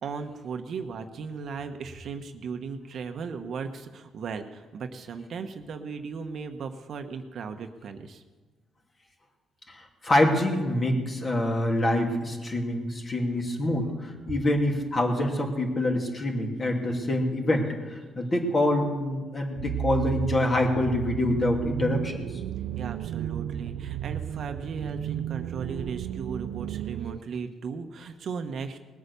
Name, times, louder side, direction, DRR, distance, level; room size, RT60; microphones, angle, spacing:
voice 1, 0.0-8.2 22.8-28.8, right 5 dB, 60° right, 6 dB, 1.1 m, -36 dB
voice 2, 9.7-22.2, left 1 dB, 35° left, 1 dB, 2.8 m, -26 dB
sound 1, 19.6-27.2, right 11 dB, 85° right, 0.3 m, -33 dB
19.5 x 8.4 x 6.8 m, 1.3 s
cardioid pair, 90°, 0 cm